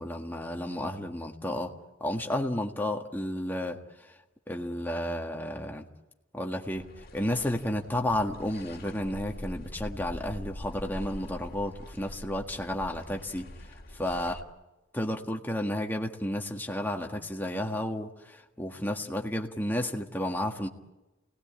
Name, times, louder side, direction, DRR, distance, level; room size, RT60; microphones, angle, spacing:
voice 1, 0.0-1.7 2.0-3.8 4.5-5.9 6.3-6.9 7.1-13.5 13.9-14.4 14.9-20.7, left 1 dB, 10° left, 2 dB, 1.7 m, -32 dB
sound 1, 6.7-14.4, left 1 dB, 50° left, 2.0 m, -44 dB
29.0 x 19.0 x 8.8 m, 1.0 s
head